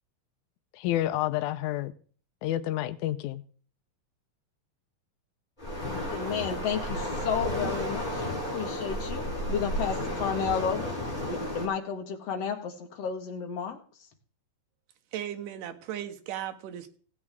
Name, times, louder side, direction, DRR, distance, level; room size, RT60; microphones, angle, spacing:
voice 1, 0.7-1.9 2.4-3.4, left 13 dB, 90° left, 1.7 m, -29 dB
Waves surf, 5.6-11.7, left 1 dB, 10° left, 5.2 m, -32 dB
voice 2, 6.1-8.3 8.5-10.9 11.2-13.8, left 6 dB, 55° left, 2.0 m, -32 dB
voice 3, 15.1-16.9, right 11 dB, 70° right, 2.5 m, -36 dB
17.0 x 8.7 x 3.6 m
omnidirectional pair, 4.2 m